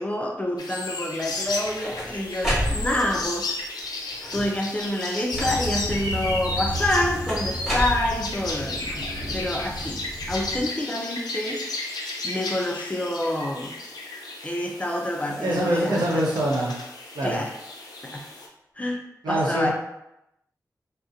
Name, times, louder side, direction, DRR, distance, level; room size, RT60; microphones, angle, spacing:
voice 1, 0.0-3.5 4.3-9.0 9.3-11.6 12.2-13.8 14.4-16.3 17.2-17.6 18.0-18.3 18.8-19.7, left 1 dB, 20° left, 1 dB, 0.4 m, -28 dB
sound 1, 0.6-18.5, left 2 dB, 90° left, 0.4 m, -34 dB
sound 2, 1.4-3.3 4.1-4.7 5.4-5.9 7.3-8.6, equal, 10° right, 1.3 m, -29 dB
sound 3, 5.3-10.6, equal, 45° right, 1.2 m, -33 dB
voice 2, 15.4-16.8 17.2-17.4 19.2-19.7, right 1 dB, 85° right, -4 dB, 0.7 m, -24 dB
2.5 x 2.0 x 2.4 m, 0.84 s
cardioid pair, 45°, 7 cm